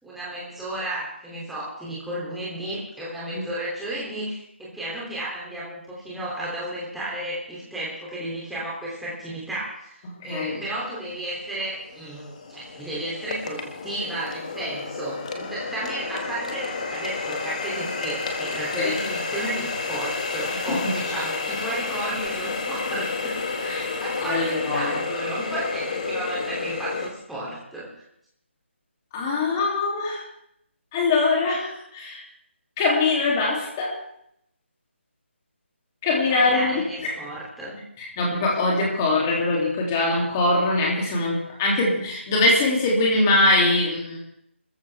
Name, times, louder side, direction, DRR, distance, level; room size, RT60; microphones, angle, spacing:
voice 1, 0.0-28.0 36.3-37.8, right 1 dB, ahead, -7 dB, 3.0 m, -33 dB
voice 2, 10.0-10.6 18.8-18.9 20.7-20.9 23.7-23.8 24.3-25.0 29.1-30.2 30.9-32.2 32.8-34.0 36.0-37.1 38.0-44.2, left 2 dB, 15° left, -2 dB, 2.9 m, -22 dB
Water tap faucet, 10.6-10.7 11.3-27.1, left 4 dB, 35° left, 2.0 m, -30 dB
27.5 x 14.5 x 3.5 m, 0.72 s
hypercardioid pair, 175°, 7 cm